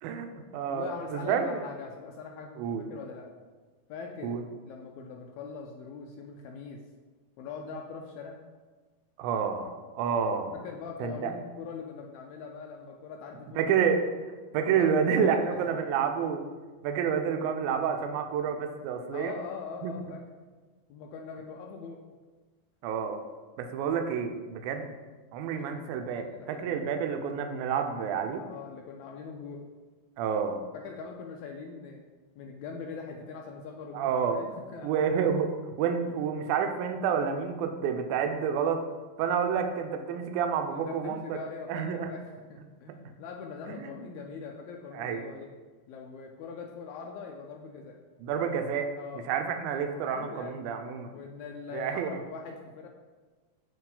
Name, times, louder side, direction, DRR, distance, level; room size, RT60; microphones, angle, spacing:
voice 1, 0.0-1.6 2.6-2.9 4.2-4.4 9.2-10.6 11.0-11.3 13.6-14.1 14.5-16.4 16.8-19.3 19.8-19.9 22.8-23.2 23.6-24.9 25.3-28.4 30.2-30.6 33.9-34.4 34.8-38.8 39.2-41.4 41.7-42.1 43.1-43.2 43.8-43.9 44.9-45.4 48.2-48.9 49.3-51.1 51.7-52.2, right 7 dB, 80° right, 6 dB, 1.9 m, -29 dB
voice 2, 0.7-3.3 3.9-6.8 7.4-8.4 10.6-13.7 14.5-15.8 19.1-20.2 20.9-22.0 25.4-26.9 28.4-29.7 30.7-32.0 32.4-34.9 36.1-36.2 40.7-45.5 45.9-48.0 48.9-49.4 49.9-50.6 51.1-52.9, left 5 dB, 85° left, 1 dB, 1.6 m, -42 dB
8.7 x 3.1 x 3.8 m, 1.4 s
omnidirectional pair, 3.8 m